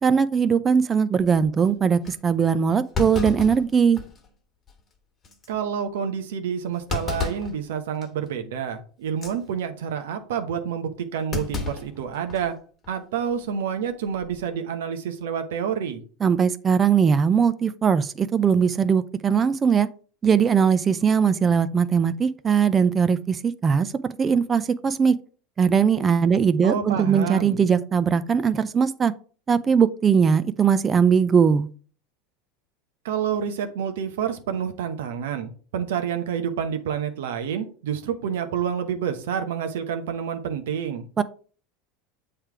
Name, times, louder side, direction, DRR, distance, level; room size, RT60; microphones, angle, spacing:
voice 1, 0.0-4.0 16.2-19.9 20.2-23.9 24.2-25.1 25.6-29.1 29.5-31.7 41.2-41.3, right 6 dB, 30° right, 0.5 m, -20 dB
Thump thud, 1.2-1.5 2.1-2.2 2.9-4.3 4.7-4.8 5.2-5.5 6.9-7.6 8.0-8.3 9.1-9.4 11.3-12.5 12.8-12.9 14.1-14.4, left 4 dB, 30° left, 1.6 m, -31 dB
voice 2, 5.5-12.6 12.9-16.0 26.6-27.7 33.0-41.1, right 8 dB, 80° right, 0.9 m, -28 dB
7.3 x 3.3 x 4.6 m
hypercardioid pair, 95°, 0 cm